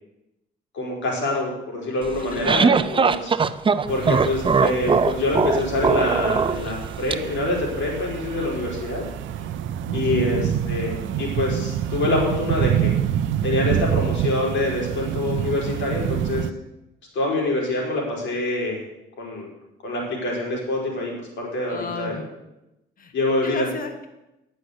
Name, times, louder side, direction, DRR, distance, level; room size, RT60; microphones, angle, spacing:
voice 1, 0.7-3.3 3.9-9.1 9.9-12.9 13.4-16.5 17.1-18.8 19.2-19.5 19.8-22.2 23.1-23.7, left 2 dB, 70° left, -2 dB, 4.2 m, -25 dB
sound 1, 2.1-7.1, right 5 dB, 25° right, 0.5 m, -20 dB
voice 2, 2.2-2.6 9.4-10.5 21.7-22.3 23.0-23.1 23.4-24.1, left 5 dB, 45° left, 6 dB, 1.3 m, -36 dB
sound 2, 3.9-16.5, right 10 dB, 75° right, 0.5 m, -27 dB
9.5 x 6.5 x 8.0 m, 0.92 s
cardioid pair, 90°, 20 cm